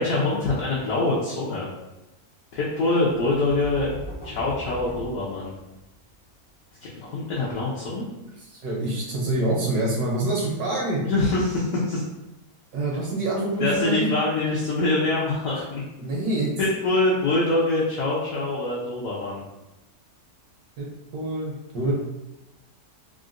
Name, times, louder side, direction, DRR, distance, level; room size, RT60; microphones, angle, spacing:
voice 1, 0.0-1.7 2.5-3.9 4.2-5.5 6.9-8.0 11.0-12.0 13.6-15.8 16.6-19.4, left 2 dB, 65° left, -6 dB, 0.9 m, -24 dB
sound 1, 3.1-6.0, equal, 15° left, 0.4 m, -39 dB
voice 2, 8.5-11.0 12.7-14.1 16.0-16.5 20.8-20.9 21.1-21.9, right 2 dB, 75° right, -4 dB, 1.2 m, -26 dB
3.7 x 2.1 x 2.4 m, 0.97 s
omnidirectional pair, 1.7 m